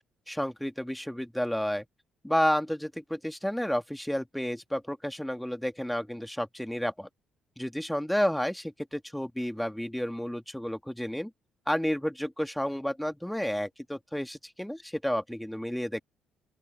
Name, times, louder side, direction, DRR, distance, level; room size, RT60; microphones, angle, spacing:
voice 1, 0.3-1.8 2.2-7.1 7.6-11.3 11.7-16.0, equal, 5° left, 2.7 m, -31 dB
open air
hypercardioid pair, 45°, 0 cm